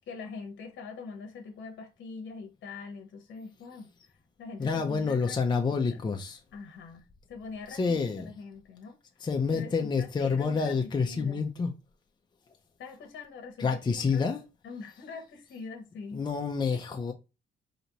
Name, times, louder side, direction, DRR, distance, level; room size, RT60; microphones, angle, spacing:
voice 1, 0.1-3.9 4.4-6.0 6.5-9.0 9.5-11.4 12.8-13.7 14.0-14.2 14.6-16.2, left 4 dB, 65° left, 0.9 m, -43 dB
voice 2, 4.6-6.4 7.7-8.3 9.2-11.7 13.6-14.4 16.1-17.1, left 5 dB, 20° left, 0.6 m, -28 dB
4.1 x 2.9 x 2.8 m
cardioid pair, 90°, 20 cm